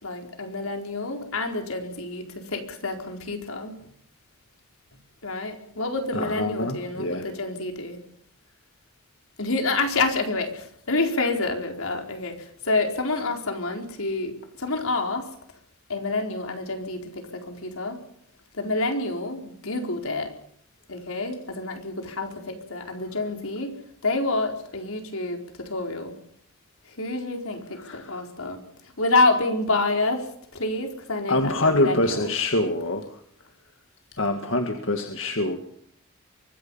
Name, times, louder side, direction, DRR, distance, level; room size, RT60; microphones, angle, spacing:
voice 1, 0.0-3.7 5.2-8.0 9.4-14.3 14.6-15.3 15.9-18.0 18.5-20.3 20.9-23.7 24.0-26.1 27.0-28.6 29.0-30.3 30.5-32.3, left 2 dB, 80° left, 3 dB, 4.4 m, -28 dB
voice 2, 6.1-7.3 27.8-28.2 31.3-33.1 34.2-35.6, left 2 dB, 65° left, 5 dB, 1.9 m, -25 dB
24.5 x 22.0 x 5.6 m, 0.65 s
head